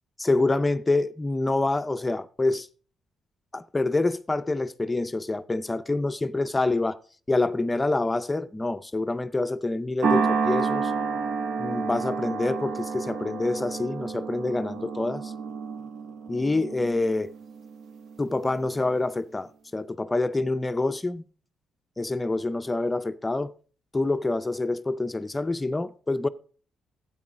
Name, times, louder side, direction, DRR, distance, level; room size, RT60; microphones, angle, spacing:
voice 1, 0.2-2.7 3.5-7.0 7.3-10.9 11.6-15.3 16.3-17.3 18.2-21.2 22.0-23.5 23.9-26.3, left 2 dB, 15° left, 0.4 m, -26 dB
sound 1, 10.0-18.5, right 5 dB, 70° right, 0.8 m, -30 dB
12.5 x 8.6 x 3.7 m
cardioid pair, 90°, 0 cm